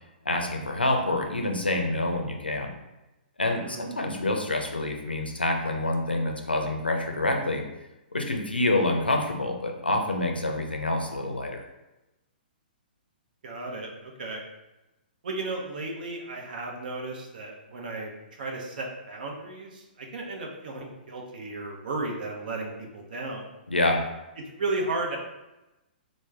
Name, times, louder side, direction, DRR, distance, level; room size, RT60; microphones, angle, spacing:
voice 1, 0.3-2.7 3.4-7.6 8.1-11.6 23.7-24.0, left 2 dB, 90° left, 3 dB, 0.5 m, -27 dB
voice 2, 13.4-14.4 15.2-18.1 18.4-23.5 24.6-25.2, right 2 dB, 60° right, 0 dB, 0.7 m, -34 dB
3.3 x 2.1 x 3.3 m, 0.99 s
figure-of-eight pair, 120°, 5 cm